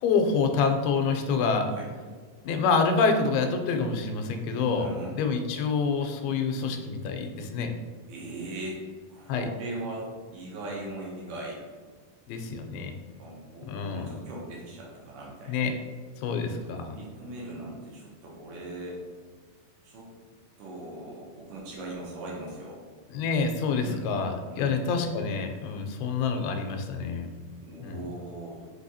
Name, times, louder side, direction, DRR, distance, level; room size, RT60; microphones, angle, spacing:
voice 1, 0.0-1.7 2.4-4.9 5.2-7.7 9.3-9.5 12.3-13.0 13.6-14.2 15.5-15.8 16.2-16.9 23.1-27.3 27.8-28.1, left 5 dB, 85° left, 5 dB, 2.5 m, -27 dB
voice 2, 4.7-5.1 8.1-8.8 9.1-11.6 13.2-15.6 16.6-19.0 19.8-20.1 20.6-22.8 23.8-24.1 24.5-24.8 27.6-28.6, right 2 dB, 75° right, -3 dB, 2.2 m, -39 dB
6.0 x 2.7 x 2.7 m, 1.5 s
omnidirectional pair, 4.4 m